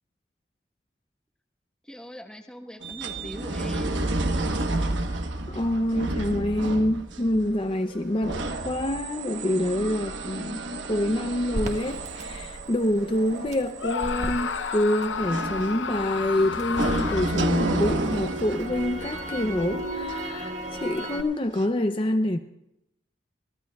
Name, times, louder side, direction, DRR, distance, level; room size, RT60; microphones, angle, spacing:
voice 1, 1.8-4.1, equal, 5° left, 4 dB, 1.1 m, -41 dB
sound 1, 2.8-21.0 21.6-21.7, right 2 dB, 80° right, 1.1 m, -31 dB
voice 2, 5.5-22.4, left 1 dB, 25° left, 6 dB, 0.6 m, -26 dB
Crackle, 11.5-15.7 16.1-21.2, right 1 dB, 40° right, 1.5 m, -36 dB
Screaming, 13.8-17.6, left 6 dB, 75° left, 0.6 m, -31 dB
23.0 x 16.5 x 2.3 m, 0.84 s
head